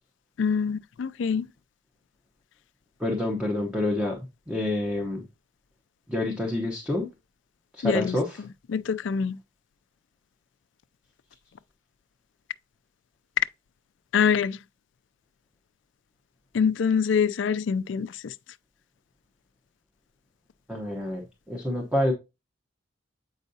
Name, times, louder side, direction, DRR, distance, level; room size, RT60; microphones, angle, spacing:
voice 1, 0.4-1.5 7.8-8.2 8.7-9.4 14.1-14.6 16.5-18.3, left 6 dB, 75° left, 0.4 m, -25 dB
voice 2, 3.0-4.2 4.5-5.2 6.1-7.1 7.7-8.4 20.7-22.1, left 1 dB, 5° right, 1.0 m, -28 dB
8.1 x 4.7 x 2.7 m
head